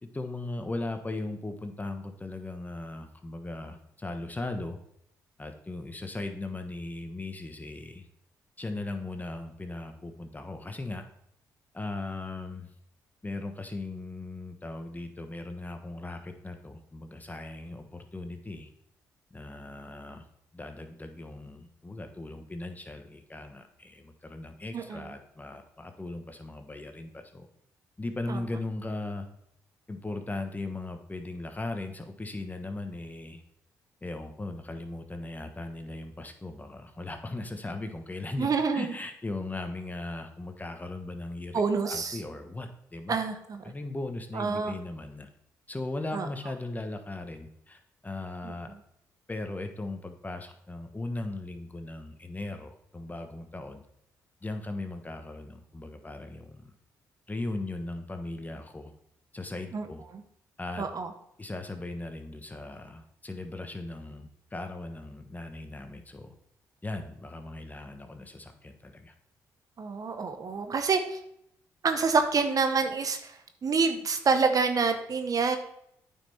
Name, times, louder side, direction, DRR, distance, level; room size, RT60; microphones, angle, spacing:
voice 1, 0.0-4.8 5.4-8.1 8.6-11.0 11.7-12.7 13.2-18.7 19.3-20.3 20.5-27.5 28.0-29.3 29.9-33.4 34.0-43.2 43.6-45.3 45.7-48.7 49.3-53.8 54.4-56.7 57.3-58.9 59.3-60.0 60.6-60.8 61.4-66.3 66.8-69.1, left 2 dB, 20° left, 6 dB, 1.3 m, -38 dB
voice 2, 24.7-25.0 28.3-28.4 38.4-38.9 41.5-42.2 43.1-43.6 44.3-44.8 46.1-46.3 48.4-48.5 59.7-59.8 60.8-61.1 69.8-71.2 71.8-73.3 73.6-75.6, right 4 dB, 50° right, 7 dB, 1.0 m, -27 dB
8.8 x 5.7 x 4.3 m, 0.73 s
supercardioid pair, 55°, 8 cm